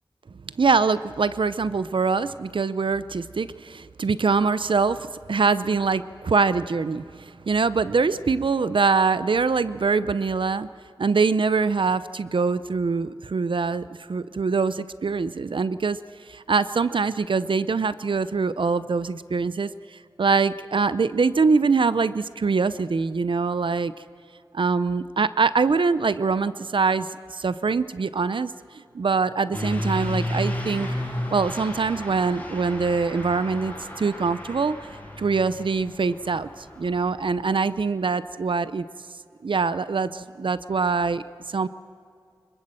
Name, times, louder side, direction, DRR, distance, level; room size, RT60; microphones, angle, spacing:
voice 1, 0.6-10.7 11.0-13.8 14.1-16.0 16.3-19.7 20.2-23.9 24.5-28.5 28.9-30.9 31.3-34.8 35.2-38.9 39.4-41.7, right 4 dB, 80° right, 15 dB, 0.6 m, -23 dB
Truck / Accelerating revving vroom, 29.5-37.5, left 1 dB, 20° left, 6.8 m, -33 dB
25.5 x 22.0 x 7.7 m, 2.3 s
wide cardioid pair, 70°, 8 cm